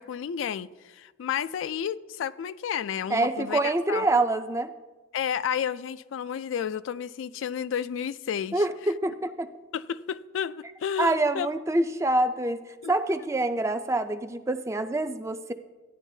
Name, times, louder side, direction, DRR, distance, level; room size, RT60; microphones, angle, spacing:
voice 1, 0.0-4.0 5.1-8.6 9.7-11.5 12.8-12.9, left 8 dB, 75° left, 0.3 m, -31 dB
voice 2, 3.1-4.7 8.5-9.5 11.0-15.5, right 2 dB, 15° right, 0.3 m, -26 dB
14.5 x 9.9 x 2.7 m
head